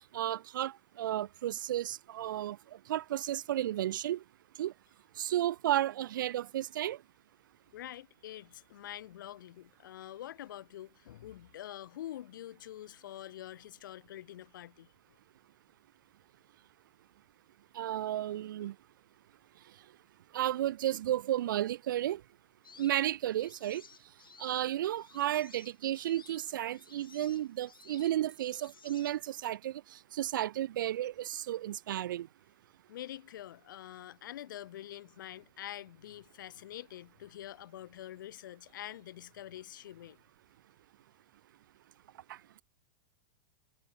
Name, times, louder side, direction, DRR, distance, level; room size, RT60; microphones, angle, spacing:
voice 1, 0.1-2.6 2.9-4.2 4.6-4.7 5.2-7.0 17.7-18.7 20.3-22.2 22.8-23.8 24.4-32.3 42.3-42.4, right 12 dB, 70° right, 0.5 m, -33 dB
voice 2, 7.7-14.9 32.9-40.2, left 12 dB, 65° left, 3.6 m, -46 dB
sound 1, 22.6-29.5, left 6 dB, 85° left, 6.0 m, -57 dB
hypercardioid pair, 100°, 11 cm